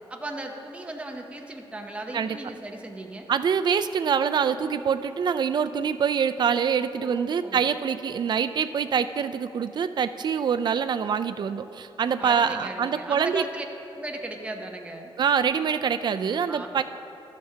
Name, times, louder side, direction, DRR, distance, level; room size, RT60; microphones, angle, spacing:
voice 1, 0.1-3.3 7.0-7.7 12.2-13.6 13.9-15.1 16.5-16.8, right 1 dB, 15° right, 2 dB, 0.8 m, -37 dB
voice 2, 3.3-13.4 15.2-16.8, right 7 dB, 50° right, 10 dB, 0.4 m, -25 dB
12.5 x 12.5 x 2.8 m, 2.9 s
wide cardioid pair, 140°, 9 cm